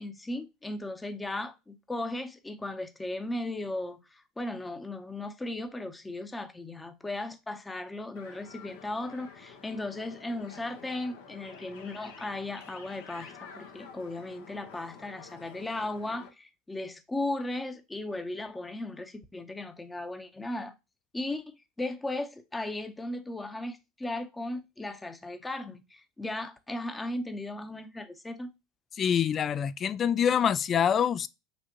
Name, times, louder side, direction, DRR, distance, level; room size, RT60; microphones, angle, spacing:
voice 1, 0.0-20.7 21.1-21.4 21.8-28.5, left 2 dB, 15° left, 0.8 m, -36 dB
sound 1, 8.1-16.3, left 5 dB, 75° left, 1.1 m, -49 dB
voice 2, 29.0-31.3, left 8 dB, 35° left, 0.3 m, -25 dB
6.1 x 2.5 x 2.9 m
hypercardioid pair, 90°, 0 cm